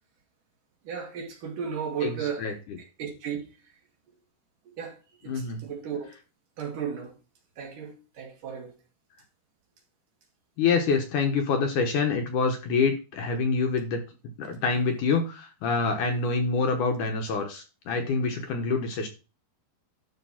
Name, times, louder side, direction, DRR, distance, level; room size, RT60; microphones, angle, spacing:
voice 1, 0.9-3.4 4.7-5.0 5.2-6.1 6.6-7.1 7.6-8.7, right 7 dB, 60° right, 3.5 m, -35 dB
voice 2, 2.0-2.5 5.3-5.6 10.6-14.0 14.4-19.1, left 4 dB, 65° left, 2.4 m, -26 dB
12.0 x 4.5 x 5.8 m
omnidirectional pair, 4.5 m